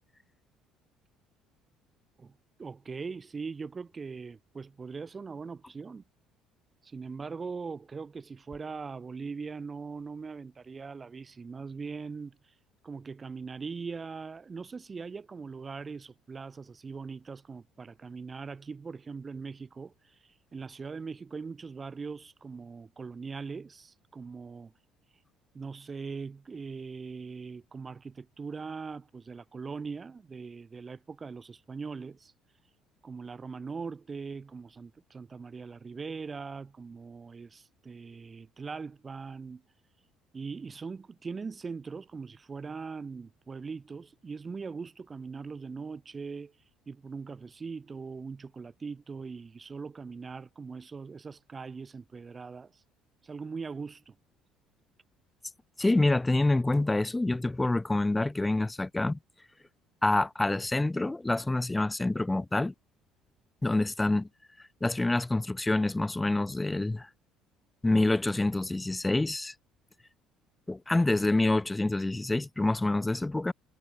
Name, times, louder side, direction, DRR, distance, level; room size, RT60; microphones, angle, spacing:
voice 1, 2.2-6.0 6.8-12.5 12.8-24.7 25.5-32.3 33.0-39.6 40.3-46.6 46.9-52.8 53.2-54.2, right 5 dB, 30° right, 4.3 m, -41 dB
voice 2, 55.8-59.2 60.0-62.7 63.6-64.3 64.8-67.1 67.8-69.5 70.7-73.5, left 2 dB, 15° left, 1.2 m, -27 dB
supercardioid pair, 75°, 0 cm